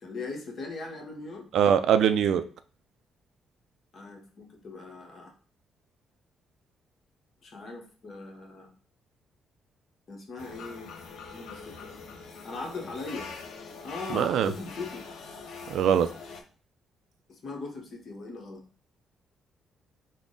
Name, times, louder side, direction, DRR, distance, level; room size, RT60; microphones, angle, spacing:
voice 1, 0.0-1.4 3.9-5.3 7.4-8.7 10.1-10.9 11.3-11.7 12.4-13.3 13.8-15.0 17.3-18.6, left 3 dB, 50° left, 2 dB, 1.0 m, -39 dB
voice 2, 1.5-2.4 14.1-14.5 15.7-16.1, right 8 dB, 75° right, 10 dB, 0.3 m, -22 dB
sound 1, 10.4-16.4, left 4 dB, 80° left, 0.6 m, -43 dB
3.6 x 2.1 x 3.7 m, 0.41 s
cardioid pair, 90°, 0 cm